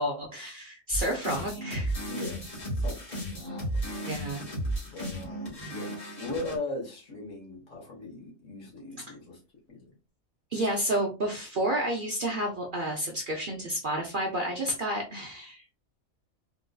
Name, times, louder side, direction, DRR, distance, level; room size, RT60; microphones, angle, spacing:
voice 1, 0.0-1.9 4.1-4.4 10.5-15.6, right 1 dB, 55° right, 1 dB, 0.6 m, -30 dB
sound 1, 0.9-6.5, right 1 dB, 30° left, 1.2 m, -34 dB
voice 2, 2.1-4.1 4.9-9.4 9.7-9.9, left 2 dB, 65° left, -1 dB, 1.6 m, -39 dB
3.8 x 2.5 x 2.2 m, 0.31 s
omnidirectional pair, 1.4 m